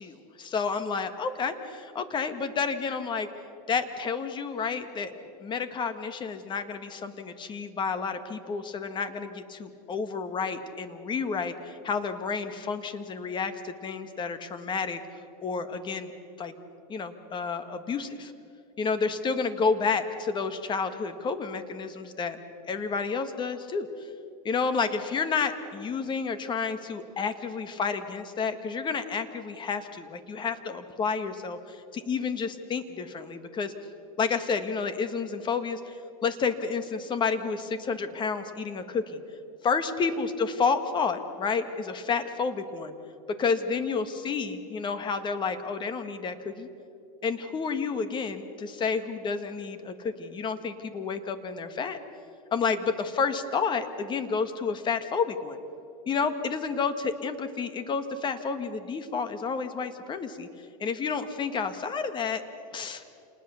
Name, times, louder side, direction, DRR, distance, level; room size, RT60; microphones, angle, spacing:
voice 1, 0.0-3.3 3.7-5.1 5.4-15.0 15.4-16.1 16.4-16.5 16.9-18.3 18.8-22.4 22.6-23.9 24.4-33.7 34.2-35.8 36.2-39.2 39.6-42.9 43.4-46.7 47.2-52.0 52.5-55.6 56.1-60.5 60.8-62.4 62.7-63.0, left 5 dB, 25° left, 10 dB, 1.6 m, -30 dB
28.0 x 20.0 x 7.0 m, 2.6 s
supercardioid pair, 135°, 20 cm